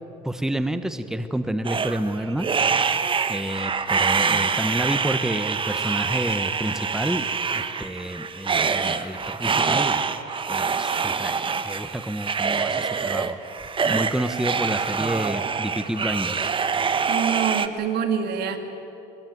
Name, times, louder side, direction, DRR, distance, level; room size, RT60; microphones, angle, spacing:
voice 1, 0.2-2.5 3.3-7.3 7.5-10.0 10.5-11.3 11.6-13.4 13.9-16.5, right 1 dB, 5° right, 9 dB, 1.1 m, -29 dB
sound 1, 1.6-17.7, right 5 dB, 30° right, 1.2 m, -25 dB
voice 2, 17.1-18.6, right 8 dB, 70° right, 6 dB, 2.4 m, -25 dB
21.5 x 21.0 x 9.4 m, 3.0 s
cardioid pair, 110°, 17 cm